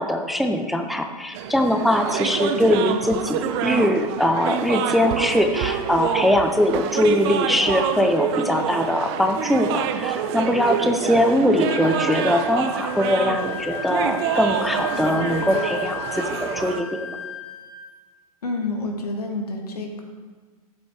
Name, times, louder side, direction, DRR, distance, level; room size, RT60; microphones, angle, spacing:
voice 1, 0.0-17.2, left 1 dB, ahead, 5 dB, 0.5 m, -21 dB
sound 1, 1.3-16.8, right 9 dB, 45° right, 0.7 m, -27 dB
Wind instrument woodwind instrument, 11.7-17.9, left 7 dB, 50° left, 1.4 m, -34 dB
voice 2, 18.4-20.0, left 2 dB, 85° left, 2 dB, 1.8 m, -28 dB
13.0 x 7.8 x 3.2 m, 1.4 s
hypercardioid pair, 115°, 19 cm